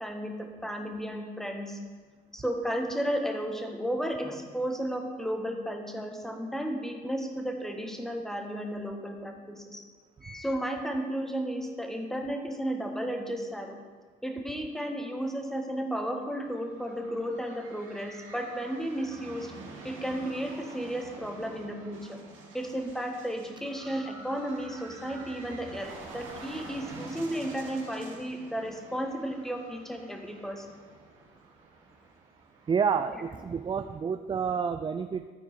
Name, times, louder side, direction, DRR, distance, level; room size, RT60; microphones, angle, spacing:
voice 1, 0.0-1.8 2.3-9.8 10.2-13.7 14.2-19.5 19.8-22.2 22.5-30.7, equal, ahead, 3 dB, 1.3 m, -33 dB
sound 1, 16.3-33.9, right 3 dB, 75° right, 1.6 m, -48 dB
voice 2, 32.7-35.3, right 6 dB, 25° right, 9 dB, 0.3 m, -29 dB
12.0 x 4.5 x 4.4 m, 1.5 s
supercardioid pair, 60°, 20 cm